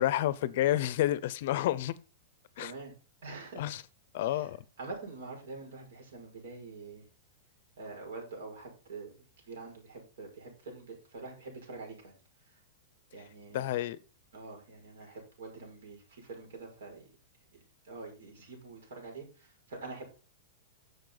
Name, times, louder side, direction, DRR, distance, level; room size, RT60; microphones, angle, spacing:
voice 1, 0.0-1.9 2.6-2.7 3.6-3.8 4.1-4.6 13.5-14.0, left 13 dB, 45° left, 0.6 m, -29 dB
voice 2, 2.6-2.9 3.2-3.7 4.3-4.5 4.8-7.1 7.8-12.1 12.4-12.6 13.1-13.8 14.3-17.1 17.8-20.0, right 3 dB, 75° right, 5.9 m, -45 dB
10.5 x 6.9 x 4.0 m
supercardioid pair, 175°, 0 cm